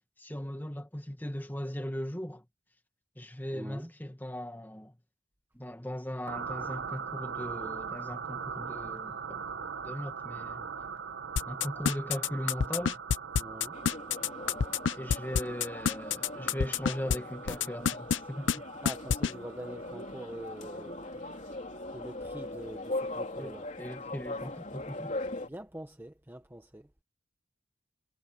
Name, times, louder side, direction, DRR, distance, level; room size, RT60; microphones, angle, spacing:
voice 1, 0.2-2.4 3.1-4.9 5.5-9.5 9.8-10.6 11.5-13.0 15.0-18.6 23.4-23.5 23.8-25.1, equal, 10° left, 1.7 m, -38 dB
voice 2, 3.5-3.9 13.4-13.8 18.8-21.2 21.5-21.6 21.9-23.7 25.4-26.9, right 1 dB, 10° right, 0.9 m, -44 dB
sound 1, 6.2-22.5, right 6 dB, 70° right, 1.2 m, -42 dB
sound 2, 11.4-17.2 17.5-18.2 18.5-18.6 18.8-19.3, left 6 dB, 70° left, 0.5 m, -27 dB
sound 3, 13.7-25.5, left 2 dB, 40° left, 3.3 m, -40 dB
head